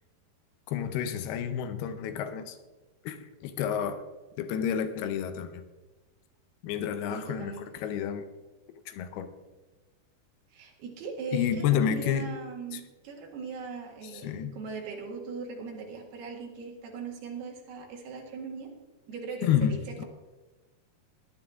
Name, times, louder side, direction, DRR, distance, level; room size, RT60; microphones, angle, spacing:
voice 1, 0.7-2.6 3.1-4.0 4.4-5.6 6.6-8.3 8.9-9.3 11.3-12.3 12.7-12.8 14.1-14.6 19.4-20.0, left 9 dB, 85° left, 10 dB, 2.8 m, -30 dB
voice 2, 7.1-7.7 10.5-18.7 19.1-20.1, right 5 dB, 80° right, 0 dB, 3.9 m, -39 dB
20.5 x 10.5 x 3.6 m, 1.2 s
omnidirectional pair, 4.5 m